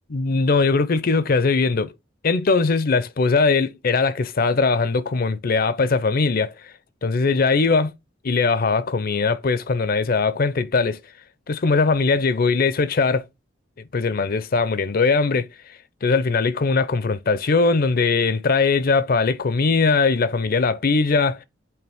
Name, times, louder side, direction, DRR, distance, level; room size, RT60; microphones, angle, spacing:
voice 1, 0.1-1.9 2.2-6.7 7.0-7.9 8.2-11.0 11.5-13.2 13.9-15.5 16.0-21.4, left 4 dB, 50° left, 0.5 m, -20 dB
8.6 x 3.7 x 3.5 m
head